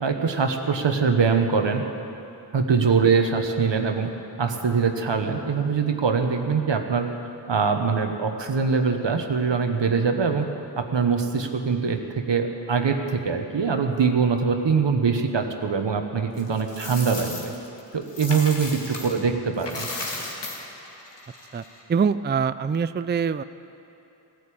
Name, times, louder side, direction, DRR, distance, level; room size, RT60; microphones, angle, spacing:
voice 1, 0.0-1.8 2.5-4.1 4.4-7.1 7.5-10.4 10.8-17.5 17.9-19.9, right 5 dB, 85° right, 5 dB, 1.2 m, -23 dB
Coin (dropping), 16.4-19.2 19.5-21.8, left 2 dB, 75° left, 2.2 m, -35 dB
voice 2, 21.9-23.4, right 6 dB, 25° right, 13 dB, 0.4 m, -24 dB
16.0 x 9.3 x 8.7 m, 3.0 s
cardioid pair, 45°, 43 cm